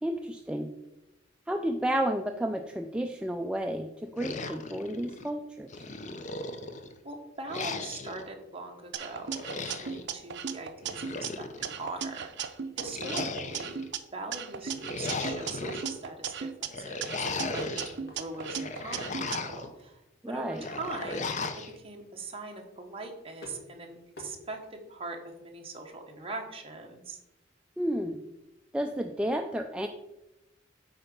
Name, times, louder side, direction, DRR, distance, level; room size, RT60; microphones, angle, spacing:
voice 1, 0.0-0.7 1.5-5.7 20.2-20.6 27.8-28.2 28.7-29.9, right 1 dB, 5° right, 4 dB, 0.3 m, -31 dB
sound 1, 4.2-5.3 5.7-6.9 7.5-8.2 9.3-10.1 10.8-11.8 12.9-13.9 14.6-15.9 16.7-17.9 18.3-19.7 20.6-21.7, left 3 dB, 40° left, 0.6 m, -36 dB
voice 2, 7.0-12.3 12.7-13.8 14.1-20.0 20.3-21.5 21.8-27.2, right 3 dB, 30° right, 2 dB, 1.2 m, -41 dB
sound 2, 8.9-11.3 11.6-14.0 14.3-16.7 17.0-19.4, right 7 dB, 65° right, 0.6 m, -36 dB
sound 3, 9.4-25.0, left 1 dB, 60° left, 1.7 m, -54 dB
8.8 x 3.9 x 5.2 m, 0.95 s
head